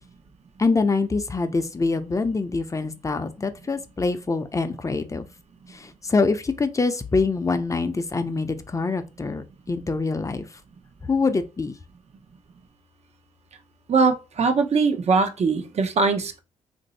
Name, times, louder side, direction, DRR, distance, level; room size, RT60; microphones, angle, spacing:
voice 1, 0.6-5.3 6.0-10.5 11.1-11.8, left 4 dB, 25° left, 0.6 m, -24 dB
voice 2, 13.9-16.4, right 4 dB, 50° right, 0.8 m, -21 dB
2.9 x 2.6 x 4.1 m
supercardioid pair, 65°, 14 cm